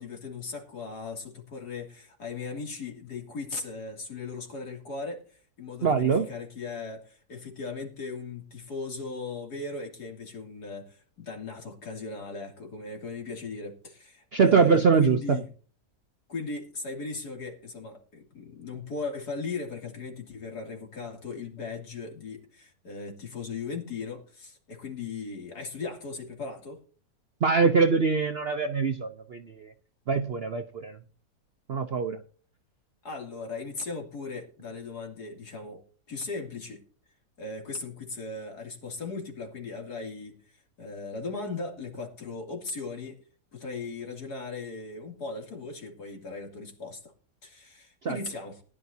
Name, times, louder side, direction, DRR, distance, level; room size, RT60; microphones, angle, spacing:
voice 1, 0.0-15.5 16.3-26.8 33.0-35.8 36.1-36.8 37.4-40.4 40.8-43.2 43.5-47.0 47.4-48.6, left 4 dB, 70° left, 1 dB, 3.2 m, -38 dB
voice 2, 5.8-6.3 14.3-15.4 27.4-29.7 30.1-31.0 31.7-32.2 48.0-48.2, right 5 dB, 60° right, 7 dB, 0.6 m, -23 dB
19.0 x 11.0 x 2.7 m, 0.40 s
omnidirectional pair, 1.8 m